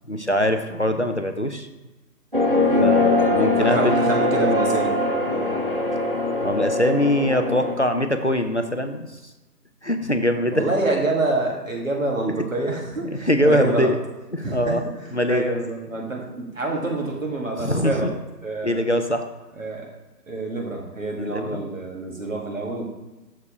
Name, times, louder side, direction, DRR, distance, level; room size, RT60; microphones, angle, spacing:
voice 1, 0.1-1.7 2.8-3.9 6.4-9.1 9.8-10.7 13.0-14.0 14.3-14.8 15.1-15.4 17.6-18.1 18.6-19.2 21.2-21.6, equal, 45° left, 6 dB, 0.5 m, -22 dB
sound 1, 2.3-7.7, left 2 dB, 35° right, 0.6 m, -21 dB
voice 2, 3.6-5.0 5.3-5.6 10.5-13.9 14.4-14.8 15.3-18.1 18.4-18.8 19.6-19.9 20.3-22.8, right 2 dB, 50° right, 0 dB, 1.8 m, -27 dB
6.9 x 4.7 x 4.8 m, 1.1 s
figure-of-eight pair, 165°, 50 cm